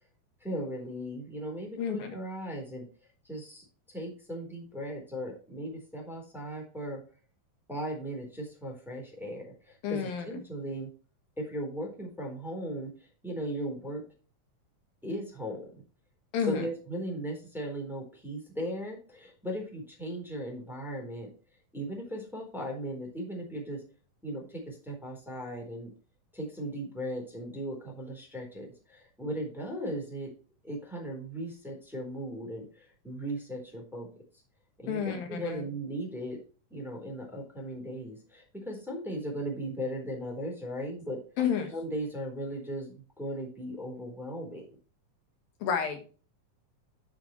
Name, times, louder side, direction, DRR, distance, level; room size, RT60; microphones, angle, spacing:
voice 1, 0.4-2.9 3.2-3.6 3.9-7.0 7.7-10.9 11.4-14.0 15.0-15.7 16.4-21.3 21.7-23.8 24.2-25.9 26.3-30.3 30.6-34.1 34.8-36.4 36.7-41.2 41.7-44.8, right 1 dB, ahead, -1 dB, 3.6 m, -37 dB
voice 2, 1.8-2.2 9.8-10.4 16.3-16.7 34.9-35.6 41.4-41.7 45.6-46.1, left 7 dB, 85° left, 4 dB, 3.5 m, -31 dB
10.5 x 7.2 x 3.2 m, 0.37 s
omnidirectional pair, 4.0 m